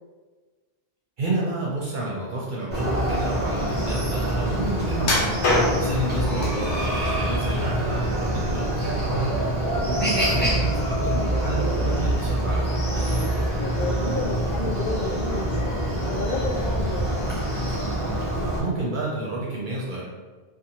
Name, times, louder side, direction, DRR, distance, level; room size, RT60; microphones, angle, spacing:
voice 1, 1.2-5.4 5.8-12.7 18.6-20.0, right 2 dB, 55° right, -5 dB, 0.6 m, -30 dB
Chicken rooster, 2.7-18.6, right 1 dB, 10° left, 0.5 m, -25 dB
sound 1, 5.0-6.1 6.7-7.4 7.8-8.7 9.1-9.3 9.8-9.9, left 2 dB, 75° left, 1.0 m, -24 dB
voice 2, 13.6-17.3, left 3 dB, 60° left, -6 dB, 0.6 m, -31 dB
2.6 x 2.3 x 2.8 m, 1.4 s
omnidirectional pair, 1.2 m